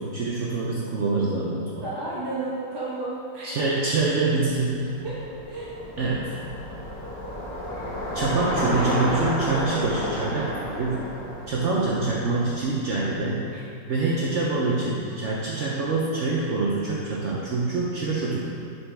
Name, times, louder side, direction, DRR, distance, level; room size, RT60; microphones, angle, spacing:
voice 1, 0.0-1.8 3.4-4.9 6.0-6.3 8.1-11.1 11.5-13.5 13.9-18.4, right 3 dB, 75° right, -5 dB, 0.6 m, -25 dB
voice 2, 1.8-3.7 5.0-5.2 5.5-5.7 8.2-8.4 13.5-13.6, right 2 dB, 25° right, -9 dB, 0.5 m, -32 dB
Bicycle, 4.6-12.9, equal, 80° left, 2.4 m, -31 dB
5.9 x 5.5 x 3.3 m, 2.6 s
omnidirectional pair, 2.0 m